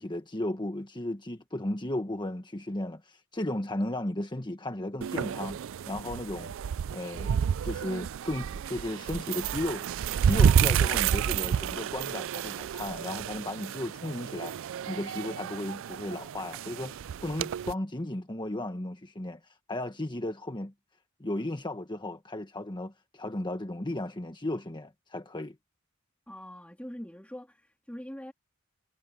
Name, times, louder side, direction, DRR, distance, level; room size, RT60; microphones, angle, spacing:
voice 1, 0.0-5.6 5.9-6.5 6.9-7.4 7.6-9.9 10.2-14.5 14.9-20.7 21.2-25.5, left 1 dB, 20° left, 1.4 m, -35 dB
sound 1, 5.0-17.7, right 8 dB, 65° right, 0.4 m, -30 dB
voice 2, 26.3-28.3, equal, 5° left, 3.0 m, -43 dB
head